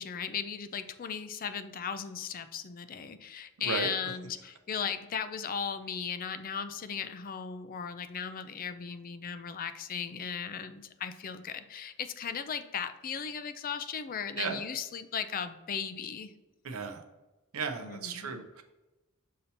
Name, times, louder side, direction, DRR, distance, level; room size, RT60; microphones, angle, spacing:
voice 1, 0.0-16.3 17.8-18.4, left 7 dB, 40° left, 11 dB, 0.4 m, -37 dB
voice 2, 16.6-17.0 17.5-18.6, right 5 dB, 75° right, 6 dB, 0.6 m, -35 dB
6.6 x 2.8 x 5.6 m, 1.1 s
head